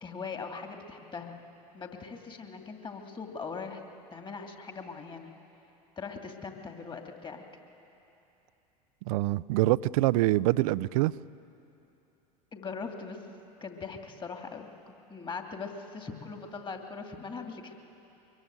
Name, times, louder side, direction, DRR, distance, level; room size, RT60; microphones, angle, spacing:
voice 1, 0.0-1.4 1.7-3.8 4.1-5.3 6.0-7.4 12.5-13.2 13.6-17.8, left 5 dB, 20° left, 4 dB, 2.5 m, -40 dB
voice 2, 9.1-11.1, right 18 dB, 55° right, 19 dB, 0.5 m, -25 dB
23.5 x 22.5 x 9.1 m, 2.9 s
figure-of-eight pair, 80°, 21 cm